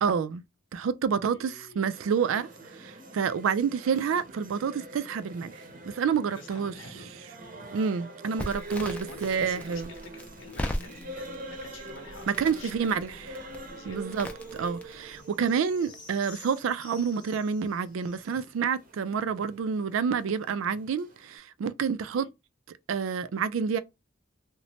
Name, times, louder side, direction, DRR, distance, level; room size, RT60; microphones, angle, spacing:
voice 1, 0.0-0.4 0.7-5.5 5.9-6.7 7.7-9.9 12.3-13.5 13.9-22.3 22.9-23.8, right 6 dB, 85° right, 0.3 m, -28 dB
voice 2, 1.3-2.0 6.4-7.7 9.0-13.4 13.7-14.0 14.5-14.8 22.1-22.3, left 4 dB, 75° left, 0.8 m, -49 dB
sound 1, 1.9-21.4, right 2 dB, 40° right, 0.6 m, -45 dB
Crackle, 8.4-15.2, left 1 dB, 5° left, 0.3 m, -39 dB
sound 2, 11.4-19.2, left 3 dB, 20° left, 0.8 m, -54 dB
3.0 x 2.1 x 2.7 m
head